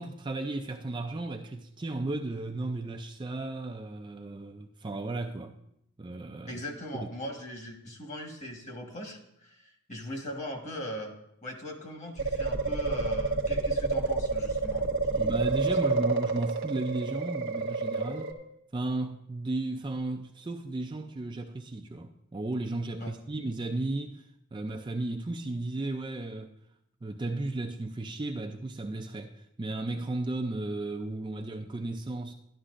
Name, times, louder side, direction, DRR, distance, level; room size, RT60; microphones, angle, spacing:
voice 1, 0.0-5.5 6.0-6.6 6.9-7.1 15.1-18.4 18.7-24.2 24.5-26.5 27.0-32.3, right 2 dB, 20° right, 0.4 m, -34 dB
voice 2, 6.5-11.1 11.4-15.4 15.8-15.9 23.0-23.1, equal, 30° left, 1.4 m, -39 dB
sound 1, 12.2-18.3, right 3 dB, 55° right, 0.9 m, -29 dB
12.0 x 11.5 x 2.5 m
head